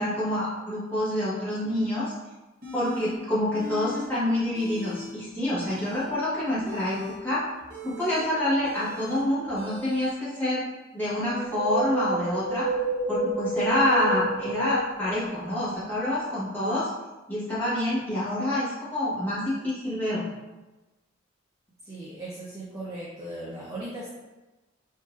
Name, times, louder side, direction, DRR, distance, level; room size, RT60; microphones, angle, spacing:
voice 1, 0.0-2.1 2.7-7.4 7.8-10.6 10.9-12.6 13.1-16.9 17.3-20.2, left 1 dB, 10° left, -11 dB, 1.3 m, -27 dB
sound 1, 2.6-3.1 3.5-4.1 4.4-5.1 5.5-10.1, left 2 dB, 50° right, 0.9 m, -40 dB
Wind, 11.3-15.6 15.9-16.0, right 2 dB, 90° left, 0.5 m, -30 dB
voice 2, 21.9-24.1, right 1 dB, 15° right, -7 dB, 0.5 m, -37 dB
3.8 x 2.6 x 2.4 m, 1.1 s
head